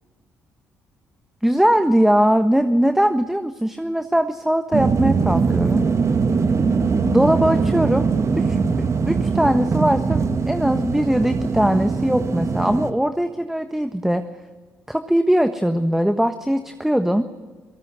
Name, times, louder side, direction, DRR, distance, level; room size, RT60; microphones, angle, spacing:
voice 1, 1.4-5.9 7.0-8.1 8.4-14.3 14.9-17.2, equal, 5° right, 9 dB, 1.3 m, -20 dB
sound 1, 4.7-12.9, right 5 dB, 45° right, 1.6 m, -21 dB
29.5 x 18.5 x 6.3 m, 1.5 s
hypercardioid pair, 50°, 7 cm